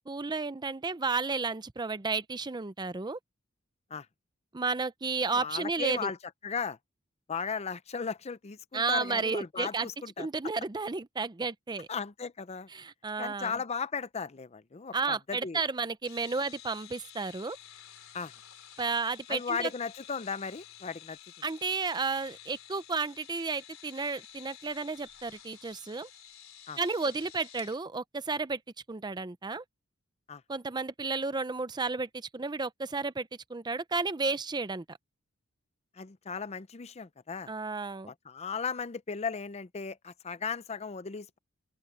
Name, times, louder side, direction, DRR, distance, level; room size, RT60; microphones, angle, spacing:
voice 1, 0.1-3.2 4.5-6.1 8.7-9.9 10.2-11.9 12.7-13.6 14.9-17.6 18.8-19.7 21.4-26.1 26.8-28.6 28.9-29.6 30.5-35.0 37.5-38.1, right 4 dB, 20° right, 0.6 m, -32 dB
voice 2, 5.3-6.2 6.4-6.8 7.3-10.3 11.9-12.7 13.2-15.6 18.1-18.3 19.3-21.2 26.7-26.8 30.3-30.4 36.0-37.5 38.1-41.4, left 5 dB, 30° left, 0.5 m, -36 dB
sound 1, 16.0-27.8, left 11 dB, 70° left, 3.8 m, -51 dB
open air
head